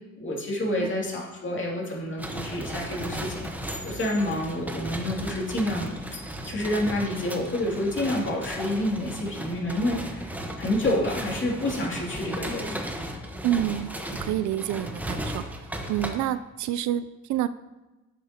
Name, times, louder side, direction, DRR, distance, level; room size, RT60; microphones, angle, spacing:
voice 1, 0.2-3.5 3.8-6.2 6.5-10.2 10.6-12.9, left 1 dB, 40° left, -2 dB, 2.5 m, -28 dB
sound 1, 2.2-16.1, equal, 5° right, 1.0 m, -35 dB
voice 2, 13.4-13.9 14.2-15.4 15.9-17.5, right 12 dB, 75° right, 13 dB, 0.5 m, -28 dB
11.0 x 7.5 x 2.8 m, 1.1 s
cardioid pair, 90°, 30 cm